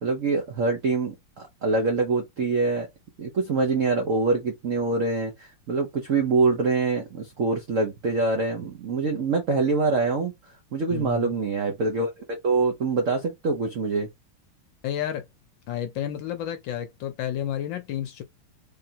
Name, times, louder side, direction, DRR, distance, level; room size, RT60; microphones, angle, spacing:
voice 1, 0.0-2.9 3.2-14.1, right 3 dB, 70° right, 0.7 m, -25 dB
voice 2, 10.9-11.3 14.8-15.2 15.7-18.2, left 10 dB, 70° left, 1.2 m, -31 dB
3.7 x 3.4 x 2.7 m
omnidirectional pair, 2.4 m